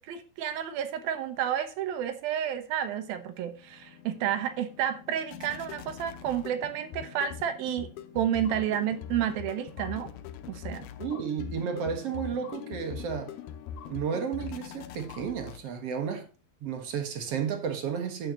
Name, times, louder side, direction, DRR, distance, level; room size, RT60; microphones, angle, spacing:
voice 1, 0.0-7.9 8.1-10.1 10.5-10.9, right 10 dB, 75° right, 2.7 m, -31 dB
sound 1, 3.3-16.0, left 8 dB, 80° left, 2.7 m, -42 dB
voice 2, 11.0-13.3 13.9-16.3 16.6-18.3, right 7 dB, 55° right, 1.8 m, -32 dB
11.5 x 8.9 x 2.9 m
omnidirectional pair, 4.6 m